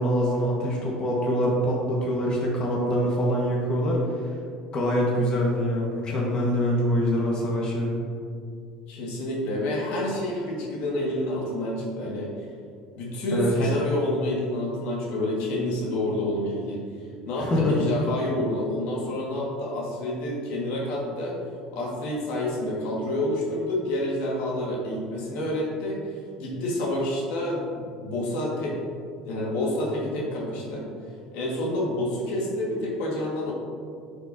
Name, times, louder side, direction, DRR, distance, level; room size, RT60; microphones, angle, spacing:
voice 1, 0.0-4.0 4.7-7.9 13.3-13.5 17.4-17.7, equal, 35° left, -3 dB, 1.4 m, -24 dB
voice 2, 8.9-12.3 13.0-16.8 17.2-21.4 21.7-28.8 29.2-30.9 31.3-33.5, left 1 dB, 70° left, -3 dB, 1.7 m, -28 dB
9.7 x 5.3 x 2.8 m, 2.3 s
supercardioid pair, 100°, 2 cm